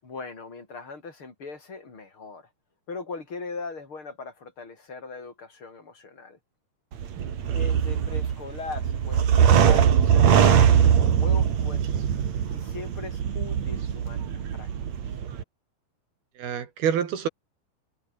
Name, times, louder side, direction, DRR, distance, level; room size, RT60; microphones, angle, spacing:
voice 1, 0.0-2.5 2.9-6.4 7.4-12.1 12.5-14.7, left 4 dB, 30° left, 5.7 m, -40 dB
sound 1, 6.9-15.4, right 8 dB, 50° right, 2.9 m, -21 dB
voice 2, 7.1-7.6 16.4-17.3, right 8 dB, 65° right, 4.3 m, -28 dB
omnidirectional pair, 4.9 m